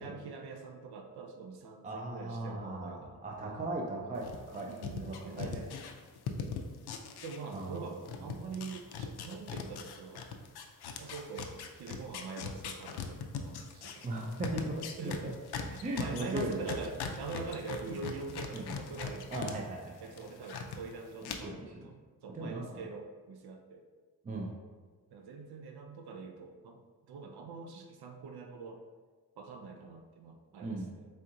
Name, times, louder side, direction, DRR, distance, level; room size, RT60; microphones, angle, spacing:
voice 1, 0.0-3.2 4.7-5.8 7.2-10.3 10.9-14.1 15.0-15.3 15.7-19.7 20.0-23.8 25.1-26.8 27.1-28.8 29.4-31.1, right 4 dB, 80° right, 4 dB, 0.6 m, -44 dB
voice 2, 1.8-4.7 5.0-5.5 7.5-7.9 14.0-15.4 15.8-16.6 17.8-17.9 18.5-18.8 19.3-20.1 21.2-21.9 22.3-22.8 24.2-24.5 30.6-30.9, right 2 dB, 25° right, 0 dB, 0.3 m, -38 dB
sound 1, 4.2-7.8 8.1-19.5 19.9-20.8 21.2-21.3, left 6 dB, 80° left, 0.5 m, -40 dB
4.3 x 3.6 x 2.5 m, 1.4 s
wide cardioid pair, 170°, 38 cm